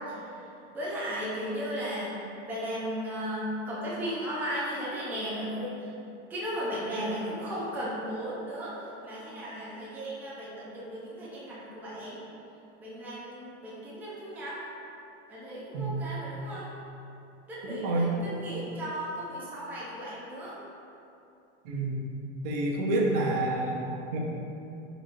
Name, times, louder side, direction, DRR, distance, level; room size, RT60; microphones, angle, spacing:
voice 1, 0.7-2.1 2.5-5.9 6.3-8.7 9.0-12.2 12.8-14.6 15.3-16.7 17.5-20.6, equal, 5° right, -8 dB, 0.5 m, -35 dB
voice 2, 17.8-18.1 21.7-22.0 22.4-24.2, right 2 dB, 55° right, -2 dB, 0.6 m, -28 dB
3.8 x 3.0 x 2.5 m, 2.7 s
supercardioid pair, 130°, 35 cm